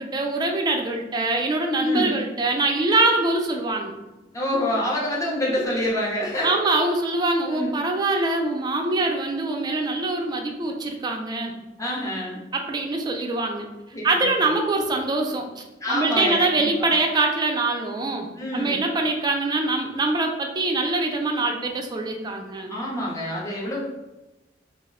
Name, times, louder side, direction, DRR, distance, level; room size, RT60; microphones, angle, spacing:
voice 1, 0.0-3.9 6.4-11.5 12.5-13.7 14.0-22.7, right 2 dB, 20° right, 2 dB, 0.3 m, -24 dB
voice 2, 1.8-2.2 4.3-6.6 7.5-7.7 11.8-12.4 13.9-14.1 15.8-16.9 18.4-18.8 22.7-23.8, left 1 dB, 20° left, -5 dB, 0.6 m, -27 dB
2.4 x 2.1 x 3.5 m, 1.0 s
head